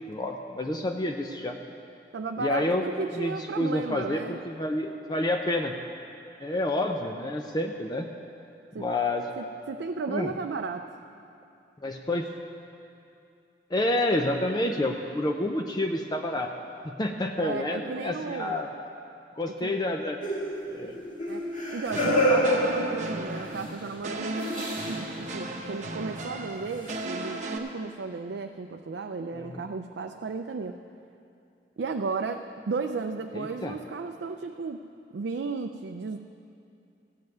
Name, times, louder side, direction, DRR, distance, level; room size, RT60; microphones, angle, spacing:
voice 1, 0.1-1.6 2.4-2.8 3.1-5.7 6.4-8.1 8.8-9.2 10.1-10.3 11.8-12.3 13.7-16.5 16.8-18.7 19.4-20.2 20.7-21.0 29.3-29.6 33.3-33.7, left 1 dB, 25° left, 3 dB, 0.5 m, -29 dB
voice 2, 2.1-4.4 8.7-8.9 9.4-10.9 17.4-18.6 19.5-19.8 21.3-21.4 21.7-30.8 31.8-34.8 35.1-36.2, right 4 dB, 80° right, 5 dB, 0.4 m, -34 dB
sound 1, 20.2-23.6 24.4-25.0 26.9-27.0, equal, 45° left, 2.2 m, -27 dB
sound 2, 21.9-27.6, right 2 dB, 45° right, 0.9 m, -36 dB
14.5 x 5.5 x 9.2 m, 2.6 s
head